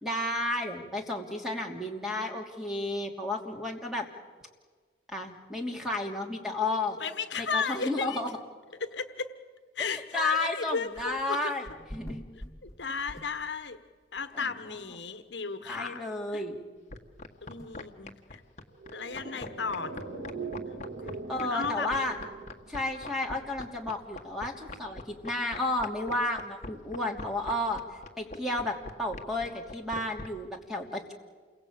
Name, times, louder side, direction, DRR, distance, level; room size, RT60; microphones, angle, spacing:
voice 1, 0.0-4.1 5.1-7.0 7.4-8.3 9.8-12.2 14.3-14.5 15.7-16.6 21.3-22.1 22.7-27.8 28.2-31.1, left 2 dB, ahead, 1 dB, 3.0 m, -32 dB
voice 2, 7.0-8.2 8.8-9.3 9.7-11.5 12.3-13.8 14.1-16.0 16.3-16.4 17.4-18.4 18.9-19.9 21.0-22.1, left 5 dB, 65° left, 10 dB, 1.3 m, -34 dB
sound 1, 10.9-11.3 11.6-13.8 14.2-14.3 14.8-14.9 15.2-15.3 15.7-15.8 17.6-17.7, equal, 15° left, 1.8 m, -45 dB
sound 2, 16.9-30.3, left 2 dB, 35° left, 1.7 m, -40 dB
sound 3, 18.7-23.3 23.6-23.7, right 4 dB, 80° right, 2.4 m, -41 dB
28.5 x 22.5 x 8.8 m, 1.5 s
head